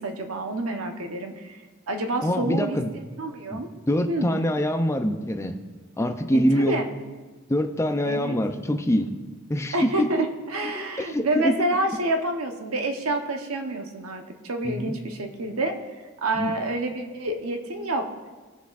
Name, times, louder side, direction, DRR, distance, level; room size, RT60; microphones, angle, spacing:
voice 1, 0.0-1.5 1.9-2.8 3.2-3.7 4.1-4.3 6.3-6.9 8.0-8.4 9.7-15.8 16.2-18.1, right 2 dB, 85° right, 4 dB, 1.0 m, -28 dB
voice 2, 2.2-2.9 3.5-3.6 3.9-5.6 6.0-6.7 7.5-9.1 9.5-10.3 10.7-11.5 14.6-14.9 16.4-16.5, equal, 15° left, 6 dB, 0.5 m, -24 dB
19.0 x 6.9 x 2.5 m, 1.3 s
head